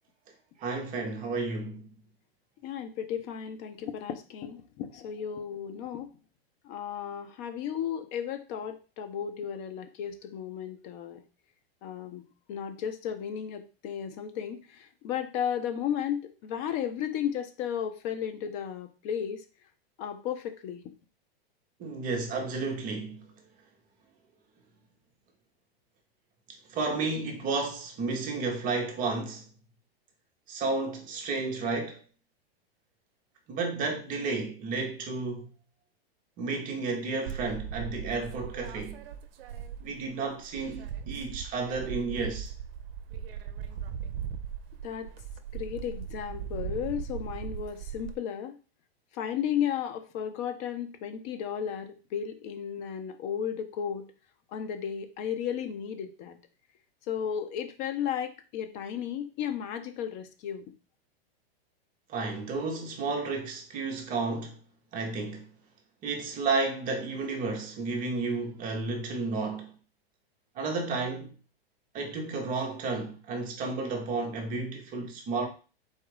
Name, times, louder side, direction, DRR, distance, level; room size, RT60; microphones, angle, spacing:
voice 1, 0.6-1.9 21.8-23.3 26.7-29.4 30.5-32.0 33.5-35.5 36.4-39.0 39.8-42.5 62.1-64.6 64.9-65.5 66.0-69.7 70.6-71.3 71.9-75.5, right 3 dB, 25° right, 0.8 m, -32 dB
voice 2, 2.6-6.1 6.6-11.2 11.8-19.4 20.0-20.9 44.8-45.1 45.5-48.6 49.1-54.0 54.5-56.4 57.1-60.6, left 9 dB, 35° left, 0.6 m, -34 dB
sound 1, 37.3-40.1 40.4-48.1, right 8 dB, 65° right, 0.6 m, -38 dB
4.4 x 2.4 x 4.7 m
supercardioid pair, 145°, 31 cm